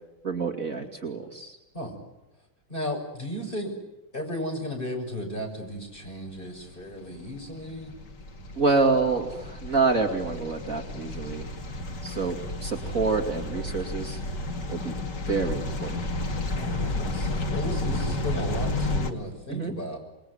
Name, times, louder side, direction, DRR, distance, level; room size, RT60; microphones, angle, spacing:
voice 1, 0.2-1.6 8.5-11.5 12.0-14.2 14.7-14.9 15.3-16.0 19.5-19.7, right 4 dB, 45° right, 2 dB, 3.0 m, -27 dB
voice 2, 2.7-3.8 4.1-7.9 16.5-20.0, left 1 dB, 25° left, 1 dB, 6.9 m, -34 dB
sound 1, 6.3-19.1, left 2 dB, 60° left, 2.9 m, -32 dB
28.0 x 21.5 x 9.7 m, 0.99 s
omnidirectional pair, 2.1 m